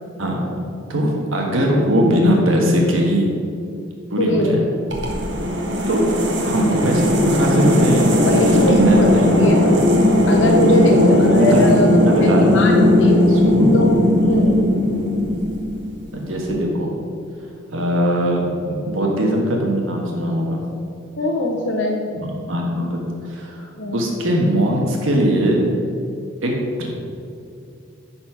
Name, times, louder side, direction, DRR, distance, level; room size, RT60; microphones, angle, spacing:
voice 1, 0.2-3.3 4.1-4.6 5.9-6.0 6.4-8.1 8.4-9.4 11.0-11.7 12.0-12.5 13.3-13.7 14.2-14.6 16.1-16.9 17.7-20.6 22.1-23.0 23.2-23.7 23.9-25.7 26.4-26.5 26.8-26.9, equal, 85° right, -1 dB, 1.4 m, -20 dB
voice 2, 4.2-4.5 8.3-9.1 9.4-9.8 10.3-11.9 12.2-13.3 13.7-13.9 14.3-14.5 21.2-22.0 23.8-24.1, left 1 dB, 70° left, 0 dB, 0.8 m, -21 dB
sound 1, 4.9-16.0, left 1 dB, 60° right, 1.4 m, -17 dB
9.9 x 4.3 x 5.9 m, 2.5 s
head